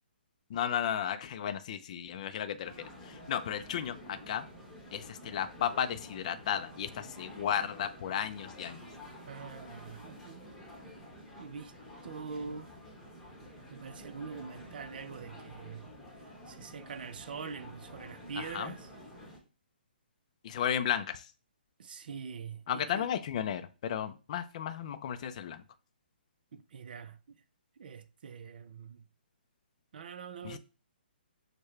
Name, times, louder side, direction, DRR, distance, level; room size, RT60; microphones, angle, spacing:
voice 1, 0.5-2.7 3.1-4.5 4.9-8.8 18.4-18.7 20.4-21.2 22.7-25.6 30.4-30.6, left 9 dB, 40° left, 0.4 m, -34 dB
sound 1, 2.6-19.4, equal, 5° left, 1.0 m, -50 dB
voice 2, 9.3-10.5 11.3-11.7 12.0-12.7 13.7-15.9 16.5-18.9 21.8-23.1 26.5-27.4 27.8-29.0 29.9-30.6, right 5 dB, 60° right, 0.5 m, -44 dB
6.4 x 2.2 x 3.2 m
hypercardioid pair, 150°, 6 cm